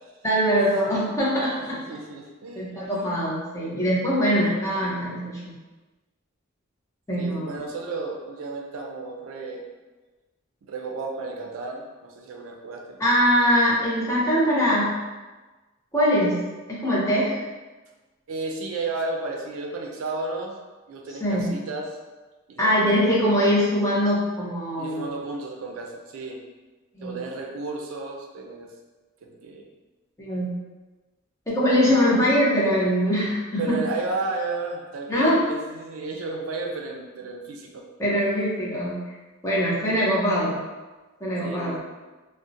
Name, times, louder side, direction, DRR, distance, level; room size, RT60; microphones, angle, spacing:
voice 1, 0.2-1.8 2.6-5.5 7.1-7.5 13.0-15.0 15.9-17.4 21.2-21.5 22.6-25.1 27.0-27.2 30.2-30.5 31.5-33.8 35.1-35.4 38.0-39.0 39.4-40.6 41.2-41.8, equal, 15° left, -7 dB, 0.6 m, -22 dB
voice 2, 1.6-2.8 4.4-4.6 7.2-9.6 10.7-13.0 18.3-20.6 20.9-21.9 22.5-23.1 24.8-26.4 27.0-28.7 29.2-29.7 33.6-38.7 41.4-41.8, right 3 dB, 75° right, 1 dB, 0.4 m, -33 dB
2.5 x 2.0 x 2.5 m, 1.2 s
head